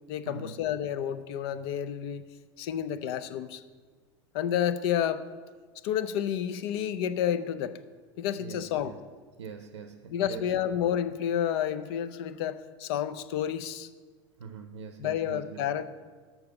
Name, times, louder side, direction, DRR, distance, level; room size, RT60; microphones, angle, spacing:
voice 1, 0.1-2.2 2.6-3.6 4.3-5.3 5.8-7.8 8.2-8.9 10.1-13.9 15.0-15.8, left 9 dB, 65° left, 13 dB, 0.5 m, -30 dB
voice 2, 8.4-9.0 9.4-10.4 14.4-15.7, right 6 dB, 90° right, 8 dB, 0.6 m, -43 dB
6.8 x 6.0 x 6.4 m, 1.5 s
hypercardioid pair, 90°, 14 cm